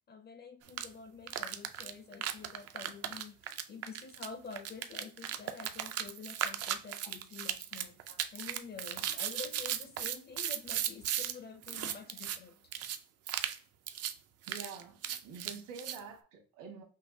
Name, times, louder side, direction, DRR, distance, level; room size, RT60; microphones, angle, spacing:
voice 1, 0.1-12.7, left 5 dB, 30° left, 0.5 m, -48 dB
sound 1, 0.7-0.9 1.3-11.3 11.6-12.4 12.7-13.0 13.3-13.6 13.9-14.1 14.4-16.0, right 10 dB, 45° right, 0.4 m, -36 dB
voice 2, 14.5-16.8, right 5 dB, 70° right, 1.6 m, -47 dB
5.7 x 2.2 x 2.6 m
cardioid pair, 140°, 35 cm